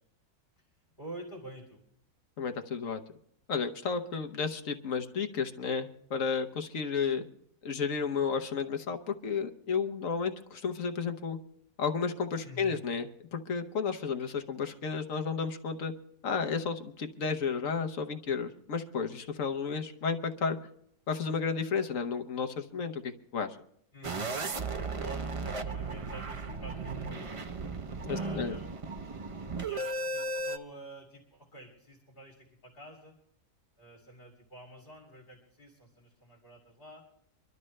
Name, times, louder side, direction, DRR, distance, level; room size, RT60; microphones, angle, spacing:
voice 1, 1.0-1.8 12.4-12.8 23.9-24.6 24.9-27.5 28.1-28.8 29.6-33.1 33.8-37.0, right 1 dB, 35° left, -1 dB, 2.9 m, -48 dB
voice 2, 2.4-3.0 3.5-7.2 7.6-11.4 11.8-15.9 16.2-20.6 21.1-23.6 28.0-28.6, left 5 dB, 60° left, 6 dB, 1.3 m, -32 dB
sound 1, 24.0-30.6, right 3 dB, 55° right, 0.3 m, -35 dB
25.0 x 12.0 x 3.2 m, 0.68 s
omnidirectional pair, 1.6 m